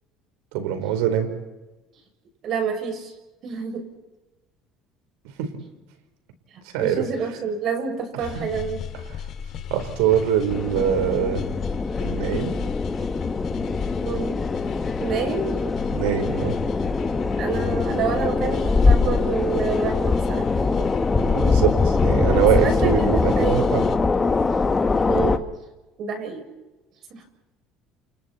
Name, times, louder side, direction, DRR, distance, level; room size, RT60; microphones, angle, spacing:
voice 1, 0.5-1.3 5.4-5.5 6.7-7.1 8.4-8.5 9.7-11.4 12.0-12.6 15.9-16.5 21.2-23.8, right 9 dB, 85° right, 8 dB, 4.4 m, -23 dB
voice 2, 2.4-3.1 3.4-3.9 6.8-8.9 14.0-14.4 15.0-15.6 17.4-20.9 22.5-23.8 25.1-25.5 26.0-26.5 27.1-27.2, right 5 dB, 55° right, 4 dB, 7.0 m, -28 dB
sound 1, 8.2-24.0, left 8 dB, 55° left, 2.5 m, -35 dB
sound 2, 10.5-25.4, left 4 dB, 20° left, 1.6 m, -23 dB
29.5 x 29.5 x 4.4 m, 1.1 s
supercardioid pair, 95°, 0 cm